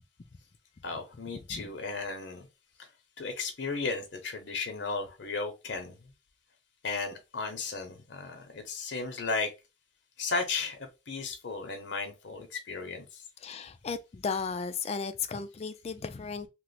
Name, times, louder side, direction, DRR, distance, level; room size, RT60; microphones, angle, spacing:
voice 1, 0.8-2.5 2.8-2.9 3.2-6.1 6.8-9.5 10.2-13.2, left 4 dB, 60° left, 0.7 m, -35 dB
voice 2, 13.4-16.5, left 5 dB, 30° left, 0.3 m, -35 dB
3.0 x 2.0 x 3.9 m
head